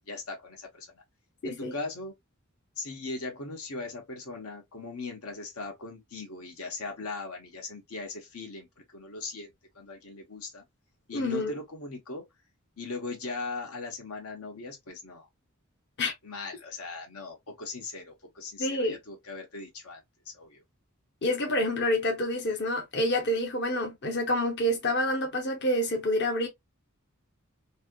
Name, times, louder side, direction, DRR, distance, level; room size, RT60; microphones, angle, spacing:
voice 1, 0.1-1.0 1.4-2.1 2.8-8.7 8.9-10.6 11.1-12.2 12.8-15.3 16.2-20.0 20.2-20.6, left 3 dB, 85° left, 1.1 m, -39 dB
voice 2, 1.4-1.7 11.1-11.5 16.0-16.1 18.6-19.0 21.2-26.5, left 1 dB, 55° left, 0.9 m, -28 dB
3.2 x 2.7 x 2.3 m
head